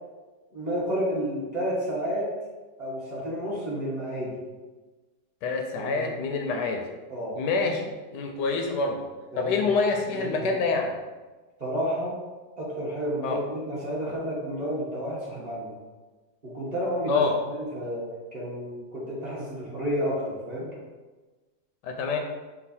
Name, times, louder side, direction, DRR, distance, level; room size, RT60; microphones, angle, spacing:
voice 1, 0.5-2.2 2.8-4.4 5.7-6.1 7.1-7.3 9.3-9.6 10.1-10.5 11.6-12.1 12.6-15.7 16.4-18.0 18.3-20.7, equal, 25° right, -8 dB, 1.2 m, -31 dB
voice 2, 5.4-6.8 7.4-9.0 9.4-10.9 13.2-13.4 17.1-17.3 21.8-22.2, left 4 dB, 80° left, 3 dB, 1.2 m, -26 dB
5.4 x 2.4 x 4.2 m, 1.3 s
omnidirectional pair, 1.9 m